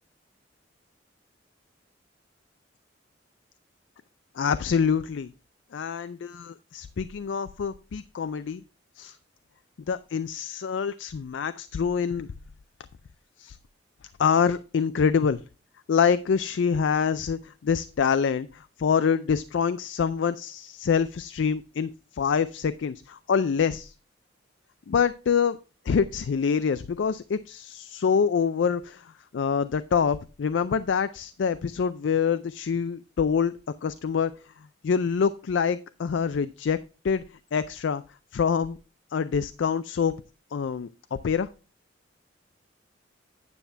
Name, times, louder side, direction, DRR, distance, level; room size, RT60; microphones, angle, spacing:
voice 1, 4.4-5.3 5.7-8.6 9.0-9.2 9.9-12.3 13.4-13.6 14.2-15.4 15.9-23.9 24.9-25.6 25.9-33.5 33.8-34.3 34.8-36.8 37.0-37.2 37.5-38.0 38.3-38.8 39.1-40.1 40.5-41.5, left 6 dB, 70° left, 13 dB, 0.4 m, -26 dB
9.4 x 7.0 x 3.3 m, 0.34 s
head